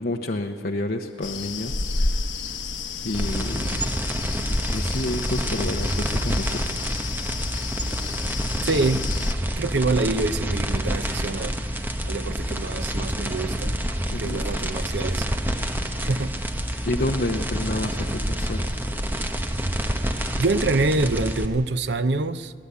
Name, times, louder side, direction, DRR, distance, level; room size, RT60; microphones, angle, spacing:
voice 1, 0.0-2.1 3.0-3.8 4.7-6.6 14.1-14.4 16.8-18.7, left 1 dB, 55° left, 0.9 m, -29 dB
sound 1, 1.2-9.3, left 3 dB, 85° left, 1.1 m, -31 dB
sound 2, 3.1-21.4, equal, 10° right, 1.0 m, -28 dB
voice 2, 8.7-9.1 9.6-11.6 12.0-13.7 14.2-15.2 16.0-16.4 20.4-22.5, right 3 dB, 70° right, 0.7 m, -25 dB
22.0 x 17.5 x 8.3 m
head